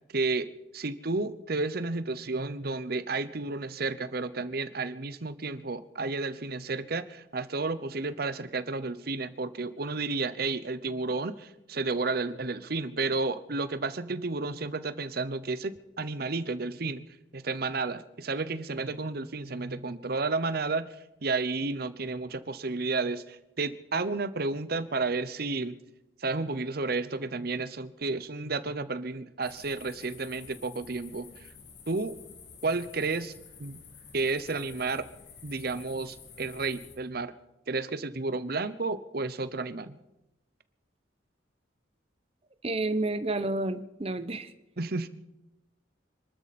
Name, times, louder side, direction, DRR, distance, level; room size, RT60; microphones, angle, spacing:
voice 1, 0.1-17.0 17.3-20.9 21.2-25.8 26.2-31.5 31.9-32.2 32.6-33.3 33.6-33.8 34.1-35.1 35.4-37.3 37.7-40.0 44.8-45.1, right 3 dB, 55° right, 14 dB, 0.9 m, -32 dB
sound 1, 29.4-37.0, left 5 dB, 60° left, 2.3 m, -50 dB
voice 2, 42.6-44.5, right 2 dB, 30° right, 11 dB, 0.8 m, -30 dB
26.5 x 13.0 x 4.3 m, 0.92 s
head